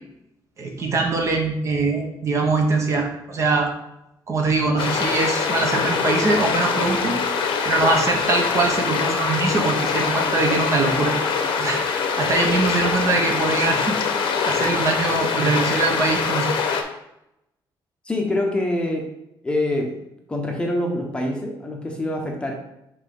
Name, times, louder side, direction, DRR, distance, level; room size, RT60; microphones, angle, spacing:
voice 1, 0.6-3.7 4.3-7.2 7.6-11.1 11.6-14.0 14.4-16.5, right 3 dB, 35° right, 2 dB, 0.9 m, -22 dB
sound 1, 4.8-16.8, left 5 dB, 85° left, 0.9 m, -23 dB
voice 2, 18.0-19.1 19.4-19.9 20.3-22.5, left 1 dB, 10° left, 0 dB, 0.8 m, -25 dB
5.6 x 3.3 x 5.3 m, 0.84 s
cardioid pair, 175°, 8 cm